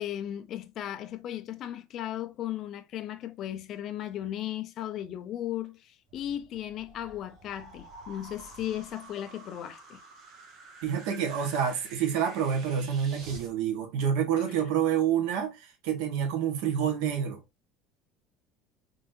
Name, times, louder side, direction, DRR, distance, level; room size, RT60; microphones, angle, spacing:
voice 1, 0.0-10.0 14.4-14.7, left 11 dB, 35° left, 0.5 m, -36 dB
sound 1, 6.1-13.5, right 3 dB, 40° right, 1.3 m, -49 dB
voice 2, 10.8-17.4, right 8 dB, 70° right, 1.3 m, -28 dB
4.0 x 3.7 x 2.6 m
cardioid pair, 170°, 0 cm